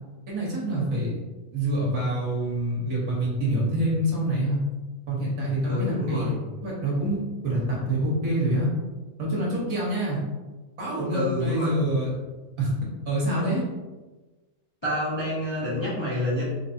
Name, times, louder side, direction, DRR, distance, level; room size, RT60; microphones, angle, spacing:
voice 1, 0.3-1.2 1.5-4.6 5.1-6.3 6.6-8.7 9.2-10.2 10.8-12.1 12.6-12.7 13.1-13.6, right 1 dB, 65° right, -5 dB, 1.5 m, -26 dB
voice 2, 5.7-6.4 11.1-11.7 13.3-13.4 14.8-16.4, left 1 dB, 25° left, -8 dB, 0.6 m, -27 dB
3.6 x 3.2 x 2.7 m, 1.2 s
omnidirectional pair, 1.6 m